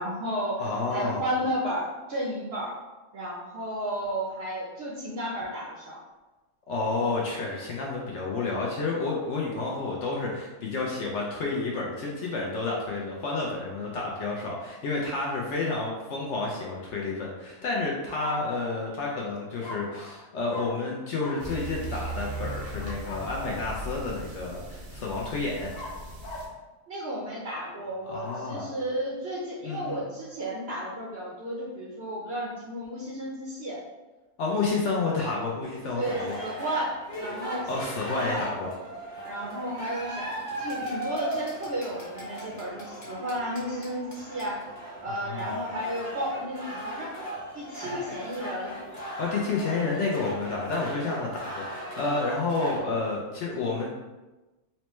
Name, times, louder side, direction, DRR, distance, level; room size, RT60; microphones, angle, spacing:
voice 1, 0.0-2.8 3.1-6.0 26.9-33.8 35.9-37.7 38.2-38.4 39.2-44.6 45.0-47.1 47.5-48.7, equal, 60° right, -4 dB, 0.7 m, -33 dB
voice 2, 0.6-1.2 6.7-25.7 28.1-28.7 29.6-30.0 34.4-36.3 37.7-38.7 45.1-45.5 47.8-48.0 49.2-53.9, left 3 dB, 65° left, -3 dB, 0.8 m, -30 dB
sound 1, 18.0-18.8 19.6-20.2 20.5-20.8 21.2-21.5 22.5-23.7 25.7-26.6 28.0-28.8, left 2 dB, 90° left, 1.2 m, -41 dB
sound 2, 21.4-26.5, right 2 dB, 75° right, 1.1 m, -38 dB
sound 3, 35.6-52.8, equal, 35° left, 0.9 m, -38 dB
4.2 x 2.1 x 3.0 m, 1.1 s
omnidirectional pair, 1.6 m